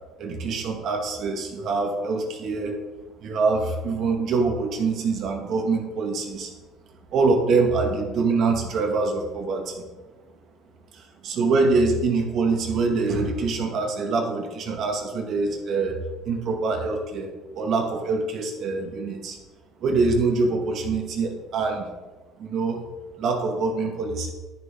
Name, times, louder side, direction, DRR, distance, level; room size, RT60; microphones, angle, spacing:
voice 1, 0.2-2.8 3.2-6.5 7.1-9.8 10.9-19.4 19.8-21.9 22.4-22.8 23.2-24.3, right 3 dB, 45° right, 2 dB, 2.2 m, -24 dB
12.5 x 11.0 x 3.9 m, 1.2 s
cardioid pair, 170°, 0 cm